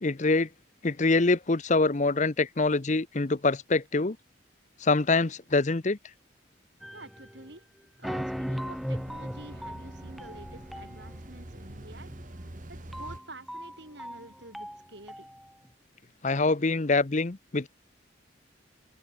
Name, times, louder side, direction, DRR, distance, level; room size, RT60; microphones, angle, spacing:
voice 1, 0.0-0.5 0.8-4.2 4.8-6.0 16.2-17.7, left 3 dB, 40° left, 0.8 m, -25 dB
sound 1, 6.8-7.5 8.0-15.5, equal, ahead, 4.1 m, -38 dB
voice 2, 6.9-7.7 8.0-12.1 12.7-15.3, right 2 dB, 60° right, 7.8 m, -49 dB
sound 2, 8.2-13.2, right 1 dB, 40° right, 1.7 m, -45 dB
open air
head